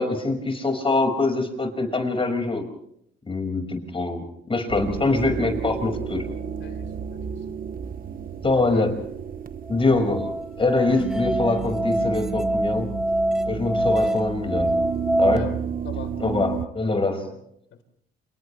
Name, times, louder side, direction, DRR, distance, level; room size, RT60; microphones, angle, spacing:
voice 1, 0.0-2.6 3.3-6.2 8.4-8.9 9.7-10.3 10.6-12.9 13.5-14.7 15.2-15.5 16.2-17.2, left 3 dB, 25° left, 5 dB, 5.6 m, -24 dB
sound 1, 4.7-16.7, right 7 dB, 45° right, 1.1 m, -32 dB
voice 2, 6.6-7.3 8.5-9.0 15.2-15.5 15.8-16.1 16.8-17.4 17.7-17.8, left 8 dB, 70° left, 7 dB, 3.9 m, -39 dB
Musical instrument, 9.7-15.4, right 1 dB, 5° right, 0.9 m, -25 dB
30.0 x 28.0 x 3.3 m, 0.72 s
cardioid pair, 90°, 20 cm